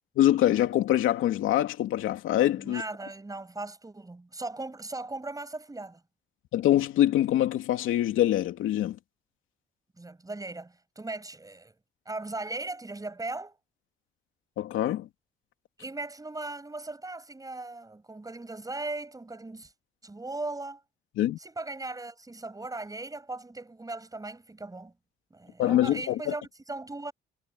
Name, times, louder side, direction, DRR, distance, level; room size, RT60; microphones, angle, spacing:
voice 1, 0.2-2.8 6.5-9.0 14.6-15.1 21.2-21.4 25.6-26.3, left 13 dB, 85° left, 2.9 m, -24 dB
voice 2, 2.6-6.0 10.0-11.7 12.1-13.6 15.8-19.7 20.0-20.8 21.4-24.9 25.3-27.1, right 2 dB, 20° right, 7.5 m, -38 dB
cardioid pair, 90°, 20 cm